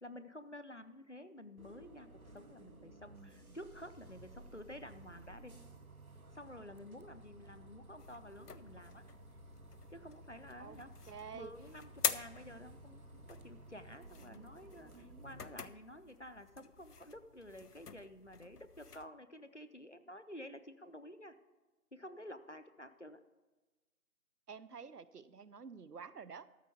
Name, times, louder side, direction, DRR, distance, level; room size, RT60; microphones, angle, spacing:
voice 1, 0.0-5.5 6.3-9.0 9.9-10.9 11.3-21.3 21.9-23.2, left 1 dB, 50° left, 11 dB, 0.7 m, -51 dB
Bus, 1.6-15.6, right 2 dB, 65° right, 1.0 m, -56 dB
sound 1, 8.0-19.1, left 5 dB, 85° left, 0.7 m, -45 dB
voice 2, 11.1-11.5 24.5-26.5, right 6 dB, 85° right, 16 dB, 0.7 m, -49 dB
13.0 x 4.4 x 7.8 m, 1.2 s
figure-of-eight pair, 180°, 46 cm